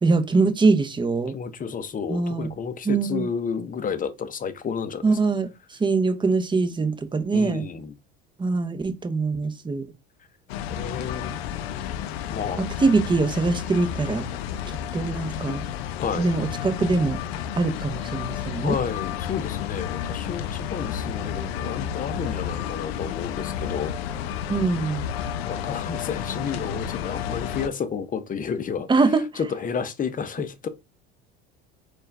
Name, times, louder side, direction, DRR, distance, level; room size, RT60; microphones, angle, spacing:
voice 1, 0.0-1.3 2.1-2.5 2.8-3.3 5.0-5.5 5.8-7.7 8.4-9.8 12.6-14.2 14.9-15.6 16.1-17.2 17.6-18.7 24.5-25.0 28.9-29.2, right 3 dB, 15° right, 0.8 m, -23 dB
voice 2, 1.3-5.2 7.3-7.9 10.7-11.4 12.3-12.6 16.0-16.3 18.6-23.9 25.5-28.9 29.4-30.7, left 6 dB, 25° left, 0.7 m, -31 dB
sound 1, 10.5-27.7, left 9 dB, 85° left, 0.5 m, -31 dB
4.3 x 2.5 x 3.3 m
hypercardioid pair, 85°, 30 cm